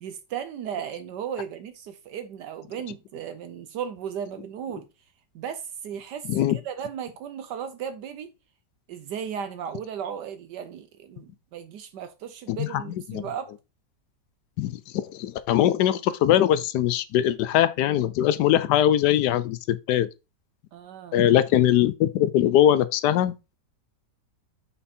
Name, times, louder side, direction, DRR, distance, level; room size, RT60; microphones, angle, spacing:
voice 1, 0.0-4.9 5.3-8.3 8.9-13.5 20.7-21.3, right 8 dB, 75° right, 1.3 m, -35 dB
voice 2, 12.5-12.8 13.1-13.3 14.6-20.1 21.1-23.6, left 11 dB, 75° left, 1.1 m, -21 dB
5.9 x 4.2 x 4.2 m
omnidirectional pair, 1.9 m